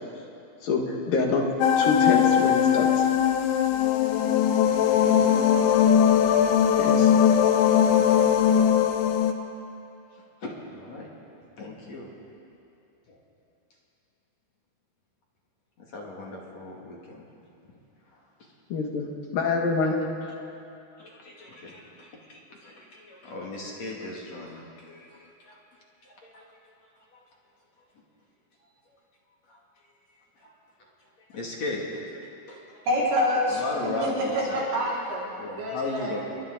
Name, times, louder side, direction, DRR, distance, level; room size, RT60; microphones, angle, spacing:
voice 1, 0.6-1.5 1.8-3.1 6.8-7.1 18.7-19.9, left 4 dB, 60° left, 0 dB, 3.2 m, -26 dB
sound 1, 1.6-9.3, left 9 dB, 90° left, 3.2 m, -20 dB
voice 2, 4.9-5.4 10.4-11.1 11.6-12.1 13.1-13.2 15.8-17.2 19.8-19.9 21.0-25.6 26.0-26.4 29.5-29.6 30.4-30.5 31.3-31.8 32.5-32.9 33.5-34.5 35.4-36.2, left 2 dB, 45° left, -3 dB, 3.2 m, -37 dB
voice 3, 32.9-33.6 34.0-34.1 34.5-35.2 35.6-36.2, left 1 dB, 90° right, -7 dB, 7.4 m, -26 dB
29.0 x 23.0 x 4.0 m, 2.7 s
omnidirectional pair, 4.9 m